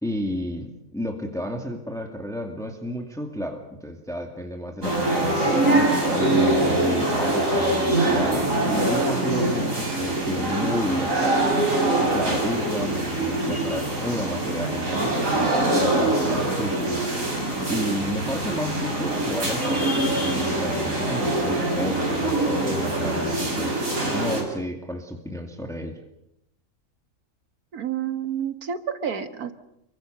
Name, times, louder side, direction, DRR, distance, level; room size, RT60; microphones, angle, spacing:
voice 1, 0.0-11.3 12.0-17.0 17.7-23.8 24.1-26.0, equal, ahead, 3 dB, 2.3 m, -32 dB
sound 1, 4.8-24.4, right 2 dB, 60° right, 6.7 m, -23 dB
voice 2, 27.7-29.5, right 8 dB, 90° right, 9 dB, 2.0 m, -29 dB
28.0 x 23.5 x 6.7 m, 0.82 s
omnidirectional pair, 1.5 m